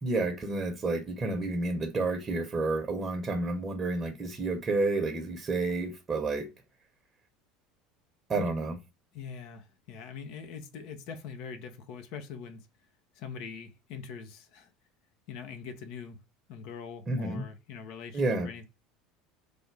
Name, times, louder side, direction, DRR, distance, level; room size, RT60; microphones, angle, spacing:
voice 1, 0.0-6.5 8.3-8.8 17.1-17.4 18.1-18.5, right 2 dB, 30° right, 0.9 m, -30 dB
voice 2, 9.1-12.7 13.1-14.7 15.3-16.2 16.5-18.7, left 6 dB, 60° left, 0.6 m, -43 dB
3.4 x 2.6 x 4.6 m
figure-of-eight pair, 70°, 0 cm